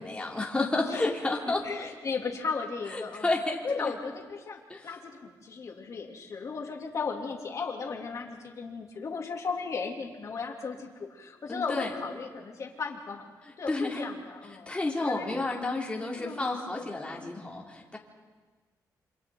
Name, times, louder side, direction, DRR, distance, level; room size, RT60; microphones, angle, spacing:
voice 1, 0.0-1.6 2.9-3.9 4.7-4.8 11.5-11.9 13.7-14.0 14.7-18.0, left 2 dB, 15° left, -1 dB, 3.0 m, -31 dB
voice 2, 1.4-3.3 3.6-13.3 13.6-14.8 15.0-15.8 16.1-16.4 17.2-17.4, left 5 dB, 50° left, 1 dB, 3.1 m, -36 dB
27.5 x 26.5 x 4.0 m, 1.4 s
cardioid pair, 115°, 7 cm